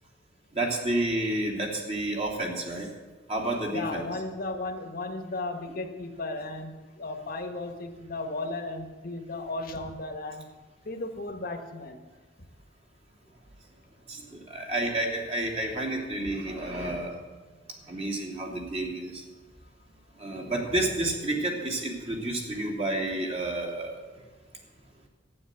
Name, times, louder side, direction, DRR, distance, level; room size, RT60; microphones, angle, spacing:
voice 1, 0.5-2.9 3.3-4.1 14.1-17.1 17.9-19.2 20.2-23.9, right 1 dB, 35° right, -1 dB, 2.6 m, -30 dB
voice 2, 3.7-10.5 10.8-12.0, left 2 dB, 50° left, 5 dB, 1.5 m, -35 dB
12.0 x 9.5 x 7.8 m, 1.3 s
head